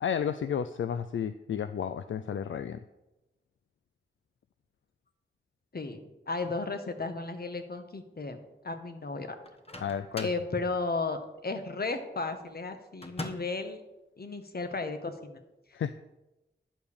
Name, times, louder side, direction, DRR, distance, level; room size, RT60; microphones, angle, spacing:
voice 1, 0.0-2.8 9.8-10.3 15.7-15.9, left 8 dB, 75° left, 11 dB, 0.4 m, -32 dB
voice 2, 6.3-8.4 8.6-9.4 10.2-13.8 14.2-15.4, left 3 dB, 50° left, 7 dB, 1.3 m, -34 dB
Microwave oven, 9.4-10.5 13.0-13.6, left 1 dB, 30° left, 1.2 m, -41 dB
10.5 x 4.9 x 7.0 m, 0.98 s
cardioid pair, 50°, 20 cm